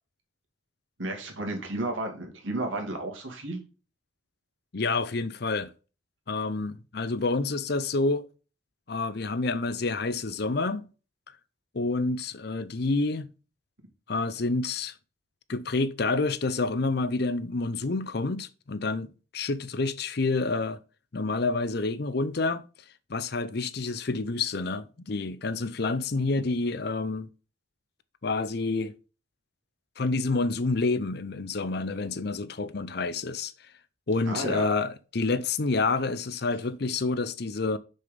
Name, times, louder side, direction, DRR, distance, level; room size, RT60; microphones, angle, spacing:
voice 1, 1.0-3.6 34.3-34.7, right 2 dB, 75° right, 2.5 m, -32 dB
voice 2, 4.7-5.7 6.3-8.3 8.9-10.8 11.7-13.3 14.1-14.9 15.5-20.8 21.1-22.6 23.1-27.3 28.2-28.9 30.0-33.5 34.1-37.8, left 3 dB, 55° left, 0.6 m, -28 dB
6.5 x 5.9 x 5.2 m
head